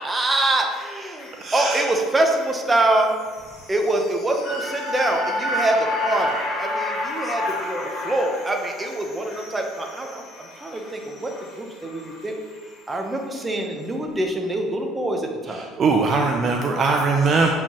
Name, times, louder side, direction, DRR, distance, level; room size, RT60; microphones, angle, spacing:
voice 1, 0.0-3.1 3.7-11.3 11.6-12.3 12.9-15.7, right 1 dB, 15° right, 2 dB, 0.9 m, -24 dB
sound 1, 0.7-13.0 13.4-13.5, left 1 dB, 45° left, 1.6 m, -31 dB
voice 2, 1.4-1.8 15.8-17.5, right 4 dB, 40° right, 2 dB, 0.5 m, -20 dB
7.2 x 4.7 x 3.0 m, 1.5 s
supercardioid pair, 110°, 0 cm